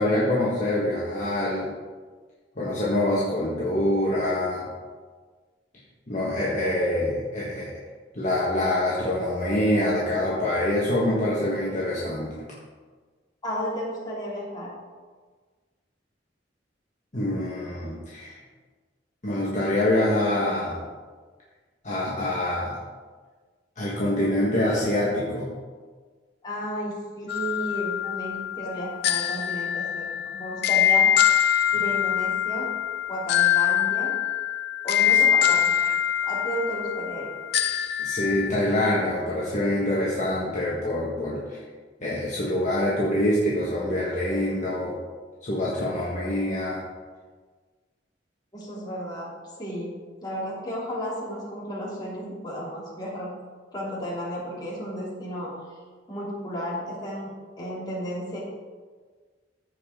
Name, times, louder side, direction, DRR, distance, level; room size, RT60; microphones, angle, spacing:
voice 1, 0.0-1.7 2.6-4.7 6.1-7.7 8.1-12.3 17.1-18.4 19.2-20.8 21.8-22.8 23.8-25.5 38.0-41.6 42.0-44.9 45.4-46.8, left 1 dB, 40° left, -6 dB, 1.5 m, -25 dB
voice 2, 13.4-14.7 26.4-31.1 31.7-32.7 33.1-34.1 34.8-35.7 36.2-37.3 48.5-49.3 49.6-49.9 50.2-53.3 53.7-55.5 56.1-57.3 57.6-58.4, equal, 25° left, -6 dB, 3.1 m, -33 dB
sound 1, 27.3-38.5, left 10 dB, 60° left, 0.4 m, -24 dB
14.5 x 5.1 x 3.8 m, 1.5 s
head